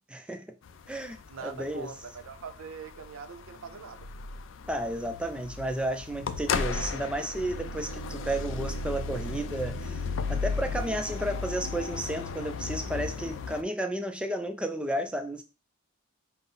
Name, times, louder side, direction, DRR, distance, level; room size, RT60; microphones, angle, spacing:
voice 1, 0.1-0.5 0.9-1.9 4.7-15.4, right 1 dB, 5° right, 0.3 m, -32 dB
sound 1, 0.7-13.6, left 4 dB, 65° left, 0.4 m, -35 dB
voice 2, 1.3-4.1, right 6 dB, 80° right, 0.5 m, -42 dB
5.3 x 2.0 x 3.8 m
head